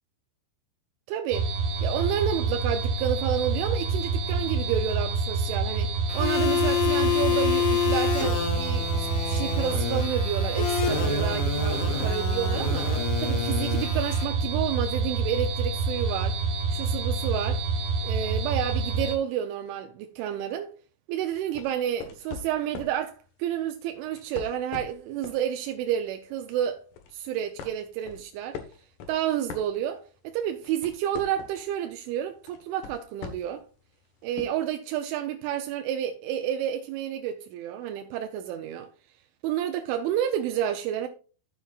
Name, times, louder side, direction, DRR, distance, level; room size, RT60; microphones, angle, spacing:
voice 1, 1.1-1.5 1.8-16.4 16.7-17.6 18.0-20.7 21.1-26.8 27.1-28.6 29.1-33.6 34.2-38.9 39.4-41.1, right 10 dB, 85° right, 3.2 m, -30 dB
sound 1, 1.3-19.2, right 3 dB, 65° right, 2.3 m, -27 dB
sound 2, 6.1-14.2, left 6 dB, 85° left, 4.4 m, -28 dB
sound 3, 21.3-23.0 24.0-25.5 25.9-26.1 26.5-27.2 27.6-30.2 30.5-31.7 32.5-33.6 34.4-34.5, left 6 dB, 70° left, 2.0 m, -41 dB
13.0 x 7.1 x 2.4 m
omnidirectional pair, 5.5 m